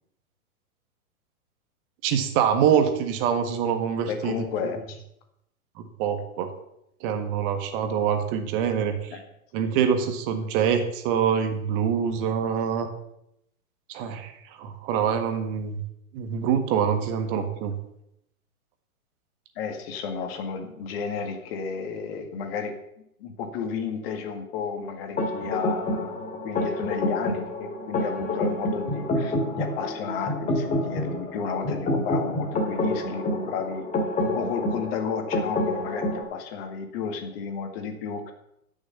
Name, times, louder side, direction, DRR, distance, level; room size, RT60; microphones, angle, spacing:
voice 1, 2.0-4.4 5.8-6.5 7.0-9.1 9.5-12.9 13.9-15.8 16.1-17.8, right 8 dB, 35° right, 7 dB, 1.6 m, -25 dB
voice 2, 4.0-5.0 9.1-9.2 9.6-9.7 19.6-22.7 23.2-33.9 34.2-38.3, left 6 dB, 45° left, 6 dB, 2.1 m, -32 dB
sound 1, 25.2-36.2, left 1 dB, 15° left, 2.5 m, -28 dB
12.5 x 6.5 x 6.8 m, 0.80 s
figure-of-eight pair, 110°, 43 cm